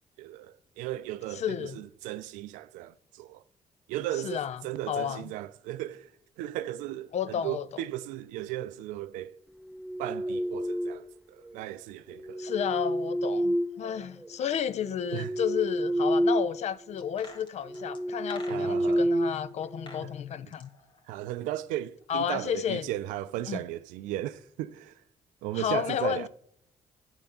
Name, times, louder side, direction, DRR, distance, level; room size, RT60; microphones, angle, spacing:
voice 1, 0.2-3.4 3.9-6.1 6.4-9.4 10.0-11.0 11.3-12.5 15.1-15.3 18.5-19.1 20.0-20.1 21.1-25.0 25.4-26.3, right 14 dB, 85° right, 0.4 m, -36 dB
voice 2, 1.3-1.8 4.2-5.3 7.1-7.7 12.4-20.7 22.1-22.9 23.5-23.6 25.5-26.3, left 8 dB, 60° left, 0.5 m, -32 dB
sound 1, 9.7-11.2 12.2-14.3 14.8-16.6 16.9-17.1 17.6-20.0, equal, 5° right, 0.6 m, -29 dB
sound 2, 17.0-19.0 19.6-20.1 20.4-21.7 22.0-22.1, left 2 dB, 40° left, 1.3 m, -49 dB
8.8 x 3.5 x 6.7 m
supercardioid pair, 55°, 13 cm